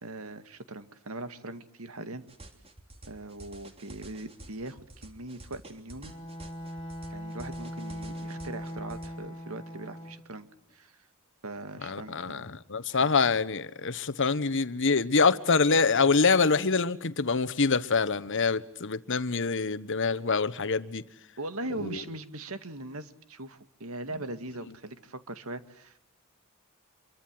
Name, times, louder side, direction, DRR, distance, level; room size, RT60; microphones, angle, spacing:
voice 1, 0.0-2.2 3.1-6.1 7.1-11.0 11.4-12.5 12.9-13.1 21.4-26.0, right 2 dB, 75° right, 2.1 m, -40 dB
sound 1, 2.3-9.1, right 2 dB, 30° right, 3.1 m, -49 dB
Bowed string instrument, 6.0-10.3, equal, 25° left, 2.9 m, -40 dB
voice 2, 11.8-21.0 21.8-21.9, left 4 dB, 60° left, 1.2 m, -25 dB
27.0 x 23.5 x 7.7 m
head